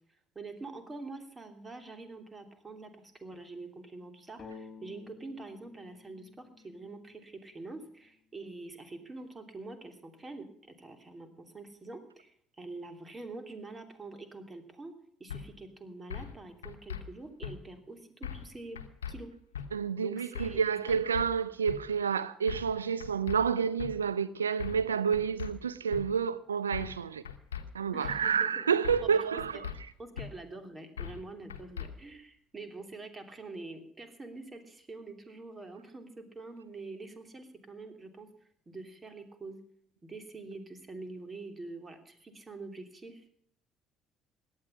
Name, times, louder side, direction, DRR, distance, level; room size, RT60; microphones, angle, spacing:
voice 1, 0.3-14.9 15.2-18.8 19.1-19.3 20.0-21.0 27.9-28.7 29.0-29.6 30.0-38.3 38.7-39.6 40.0-43.2, right 3 dB, 25° right, 3.0 m, -45 dB
sound 1, 4.4-8.1, left 5 dB, 40° left, 2.2 m, -52 dB
sound 2, 15.3-15.4 16.1-16.4 16.6-17.0 17.4-17.5 18.2-18.5 18.8-19.1 19.5-19.7 20.3-20.6 20.9-21.3 21.7-21.8 22.5-22.7 23.0-23.4 23.8-23.9 24.6-24.9 25.1-25.5 25.9-26.0 26.7-27.0 27.3-27.6 28.0-28.2 28.8-29.1 29.4-29.8 30.2-30.3 31.0-31.2 31.5-31.9, left 8 dB, 85° left, 1.0 m, -39 dB
voice 2, 19.7-27.2 27.7-29.7, right 6 dB, 90° right, 0.6 m, -29 dB
17.5 x 11.0 x 5.6 m
hypercardioid pair, 50°, 0 cm